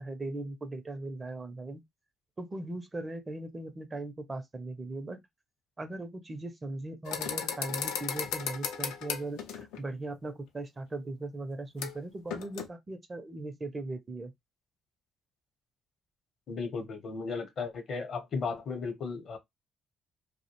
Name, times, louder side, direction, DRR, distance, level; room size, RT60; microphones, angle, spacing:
voice 1, 0.0-1.8 2.4-5.2 5.8-14.3, right 2 dB, 30° right, 0.5 m, -39 dB
sound 1, 7.1-9.8 11.8-12.0 12.3-12.7, left 7 dB, 85° left, 0.4 m, -35 dB
voice 2, 16.5-19.4, left 4 dB, 55° left, 0.8 m, -35 dB
2.3 x 2.1 x 2.8 m
supercardioid pair, 75°, 0 cm